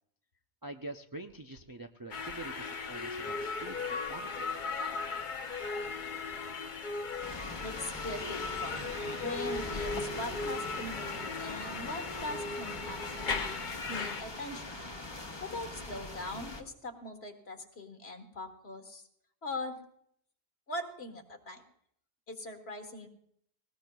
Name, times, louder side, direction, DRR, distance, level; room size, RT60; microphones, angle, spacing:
voice 1, 0.6-4.5, right 2 dB, 35° right, 5 dB, 0.4 m, -45 dB
sound 1, 2.1-14.2, left 4 dB, 50° left, 0.9 m, -37 dB
sound 2, 7.2-16.6, left 2 dB, 25° left, 1.0 m, -42 dB
voice 2, 7.6-8.9 9.2-13.6 13.9-14.8 15.4-19.0 19.4-19.8 20.7-21.6 22.3-23.1, left 2 dB, 70° left, 5 dB, 1.7 m, -41 dB
sound 3, 8.4-13.5, right 3 dB, 85° right, 1.8 m, -51 dB
19.5 x 18.0 x 2.3 m, 0.69 s
omnidirectional pair, 1.1 m